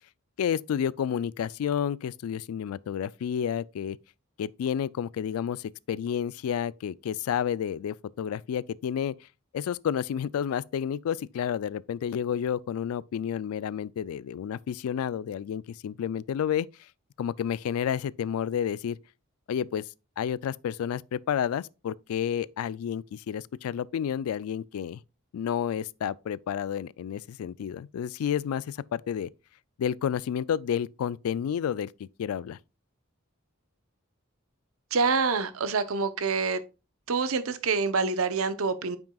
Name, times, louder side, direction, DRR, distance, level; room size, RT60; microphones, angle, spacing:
voice 1, 0.4-4.0 4.4-9.1 9.5-16.7 17.2-19.0 19.5-19.9 20.2-25.0 25.3-29.3 29.8-32.6, left 8 dB, 90° left, 0.3 m, -30 dB
voice 2, 34.9-36.6 37.1-39.0, right 4 dB, 80° right, 0.7 m, -26 dB
8.7 x 6.0 x 2.3 m
head